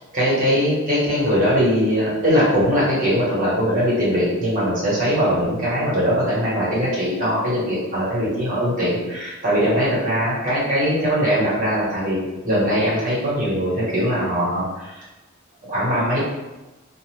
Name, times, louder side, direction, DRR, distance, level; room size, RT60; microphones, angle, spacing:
voice 1, 0.1-15.0 15.7-16.2, equal, 40° right, -7 dB, 1.2 m, -21 dB
2.5 x 2.4 x 3.1 m, 1.1 s
head